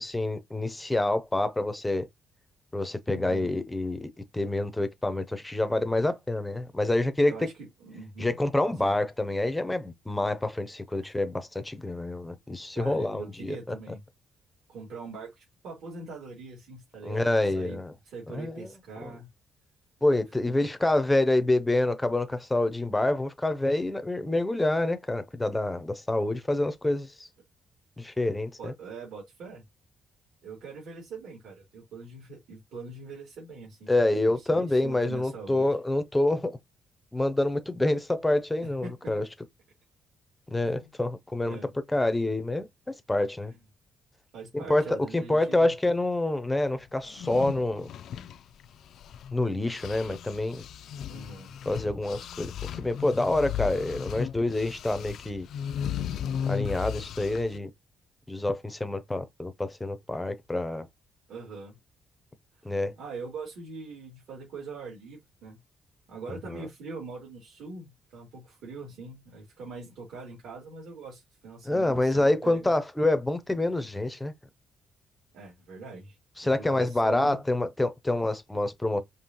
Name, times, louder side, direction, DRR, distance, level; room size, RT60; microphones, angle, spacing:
voice 1, 0.0-2.1 2.7-7.3 8.2-13.7 17.0-17.9 18.3-18.7 19.0-19.1 20.0-27.1 28.0-28.7 33.9-36.6 37.1-39.2 40.5-41.6 41.9-43.5 44.5-47.9 49.3-50.6 51.7-55.5 56.5-57.7 58.3-60.9 62.6-62.9 66.3-66.7 71.7-74.3 76.4-79.0, left 2 dB, 5° left, 0.5 m, -27 dB
voice 2, 3.1-3.5 7.3-8.3 8.8-8.9 11.0-11.1 12.7-14.0 14.7-17.8 18.0-19.3 28.6-29.6 30.4-35.7 38.8-39.1 40.6-40.9 41.4-41.7 44.3-45.7 51.1-51.6 61.3-61.8 63.0-65.6 66.1-72.7 75.3-76.2 76.4-77.5, right 4 dB, 75° right, 2.8 m, -42 dB
sound 1, 47.0-49.4 49.7-57.6, left 9 dB, 60° left, 0.4 m, -36 dB
5.3 x 2.8 x 2.9 m
cardioid pair, 170°, 0 cm